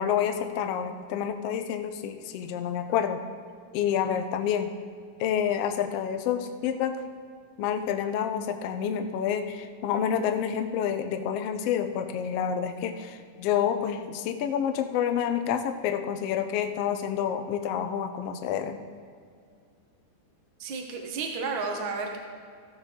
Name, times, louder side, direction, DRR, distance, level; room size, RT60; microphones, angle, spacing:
voice 1, 0.0-3.2 3.7-4.7 5.2-7.0 7.6-18.8, left 8 dB, 85° left, 7 dB, 1.3 m, -28 dB
voice 2, 20.6-22.2, right 4 dB, 85° right, 2 dB, 1.0 m, -32 dB
14.5 x 8.0 x 3.7 m, 2.2 s
omnidirectional pair, 3.6 m